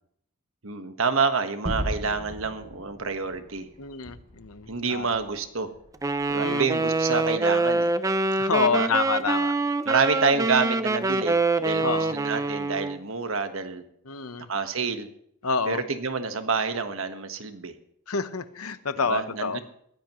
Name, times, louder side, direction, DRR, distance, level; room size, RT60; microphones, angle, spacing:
voice 1, 0.6-3.7 4.7-5.7 6.3-7.9 8.7-8.9 9.8-13.8 14.5-15.1 15.7-17.7 19.1-19.6, right 4 dB, 65° right, 8 dB, 1.3 m, -28 dB
Gunshot gunfire / Fireworks / Boom, 1.6-6.4, equal, 35° right, 2.6 m, -37 dB
voice 2, 3.8-5.1 6.4-6.7 8.4-9.5 11.8-12.1 14.1-14.5 15.4-15.8 18.1-19.6, left 5 dB, 75° left, 11 dB, 0.9 m, -28 dB
Wind instrument woodwind instrument, 6.0-13.0, right 3 dB, 15° right, 0.5 m, -25 dB
20.0 x 15.5 x 3.1 m, 0.70 s
head